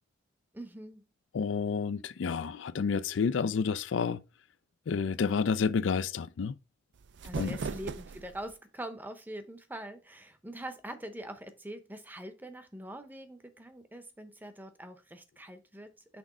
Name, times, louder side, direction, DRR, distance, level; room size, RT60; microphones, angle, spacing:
voice 1, 0.5-1.1 7.2-16.2, right 1 dB, 10° right, 0.7 m, -44 dB
voice 2, 1.3-4.2 4.9-6.6 7.4-7.6, left 5 dB, 80° left, 0.4 m, -30 dB
sound 1, 6.9-8.5, right 4 dB, 65° right, 0.4 m, -38 dB
6.1 x 3.5 x 5.0 m
head